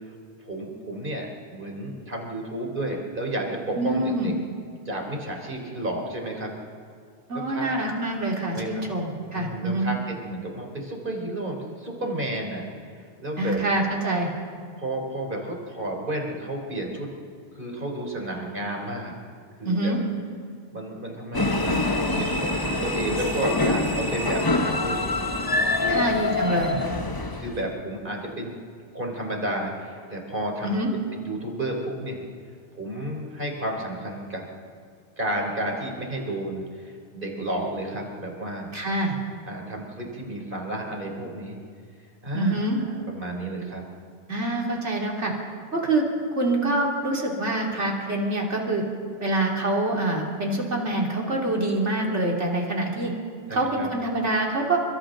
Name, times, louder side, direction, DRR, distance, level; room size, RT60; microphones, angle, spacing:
voice 1, 0.4-4.3 4.9-6.5 7.5-7.7 8.5-8.8 9.3-12.6 13.2-13.6 14.8-17.1 17.6-19.2 19.6-20.0 20.7-25.1 25.8-26.0 26.6-27.0 27.3-28.6 28.9-30.7 31.2-32.2 32.7-34.5 35.2-38.7 39.5-41.6 42.2-42.6 42.9-43.8 53.5-53.9, right 1 dB, 45° right, 0 dB, 3.7 m, -32 dB
voice 2, 3.7-4.3 7.3-9.9 13.4-14.3 19.6-20.0 25.9-26.8 30.6-30.9 38.7-39.1 42.3-42.8 44.3-45.3 45.7-46.0 46.3-48.8 49.2-53.1 53.5-54.8, right 2 dB, 90° right, -1 dB, 3.3 m, -25 dB
sound 1, 21.3-27.7, left 2 dB, 20° left, 1.0 m, -25 dB
29.5 x 24.5 x 3.9 m, 2.2 s
omnidirectional pair, 1.2 m